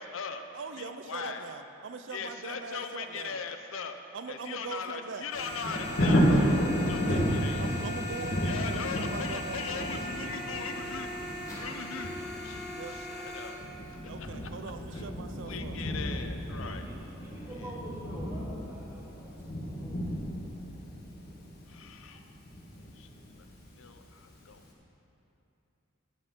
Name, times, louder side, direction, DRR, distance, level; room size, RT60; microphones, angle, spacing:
voice 1, 0.0-0.4 0.8-1.5 2.1-3.9 4.3-6.6 6.9-7.7 8.4-11.1 11.6-12.8 13.1-13.6 14.0-14.6 14.9-15.0 15.5-16.9 21.7-22.2 23.0-23.1 23.8-24.6, left 5 dB, 85° left, 7 dB, 0.7 m, -40 dB
voice 2, 0.5-3.4 4.1-5.3 7.1-7.3 7.6-9.9 12.7-13.0 14.1-15.8, right 4 dB, 65° right, 8 dB, 0.5 m, -42 dB
Thunder, 5.3-24.1 24.6-24.7, equal, 50° left, 1.4 m, -32 dB
sound 1, 5.3-13.5, left 1 dB, 15° left, 2.6 m, -39 dB
voice 3, 16.5-20.1, right 1 dB, 15° right, -4 dB, 1.7 m, -46 dB
12.0 x 7.0 x 5.9 m, 2.9 s
head